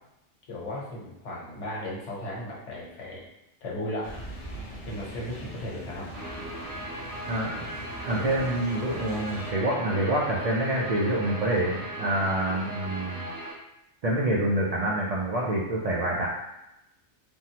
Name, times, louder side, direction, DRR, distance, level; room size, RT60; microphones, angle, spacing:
voice 1, 0.5-3.2 3.6-4.1 4.9-6.1, left 1 dB, 75° left, -5 dB, 1.2 m, -35 dB
sound 1, 4.0-9.5, equal, 45° left, 0.4 m, -41 dB
Guitar, 6.1-13.5, right 1 dB, 50° right, 0.8 m, -38 dB
voice 2, 7.3-7.7 8.1-13.3 14.0-16.3, right 1 dB, 70° right, -4 dB, 0.3 m, -27 dB
3.5 x 2.0 x 2.8 m, 0.89 s
omnidirectional pair, 1.2 m